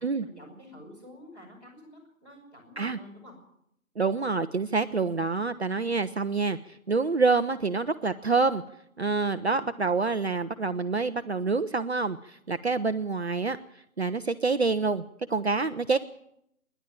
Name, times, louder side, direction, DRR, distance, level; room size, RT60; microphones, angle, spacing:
voice 1, 0.0-3.4, equal, 10° left, -4 dB, 5.6 m, -49 dB
voice 2, 4.0-8.6 9.0-13.6 14.0-15.0 15.3-16.0, right 4 dB, 50° right, 10 dB, 0.8 m, -27 dB
26.0 x 11.0 x 9.2 m, 0.76 s
figure-of-eight pair, 160°, 42 cm